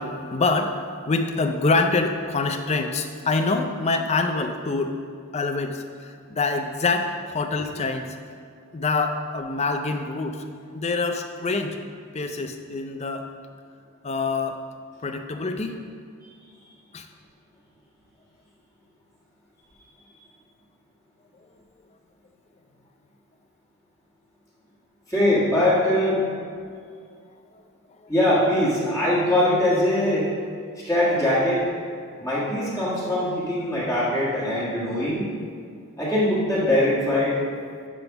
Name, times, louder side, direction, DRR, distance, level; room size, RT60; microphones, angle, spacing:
voice 1, 0.0-4.9 5.3-8.2 8.7-10.5 10.7-11.8 12.1-13.3 14.0-14.6 15.0-15.8 16.9-17.1, left 3 dB, 30° left, 5 dB, 0.5 m, -25 dB
voice 2, 25.1-26.2 28.1-30.3 30.8-31.6 32.2-35.3 36.0-37.4, left 1 dB, 15° left, -9 dB, 1.7 m, -22 dB
10.0 x 3.5 x 5.9 m, 2.2 s
head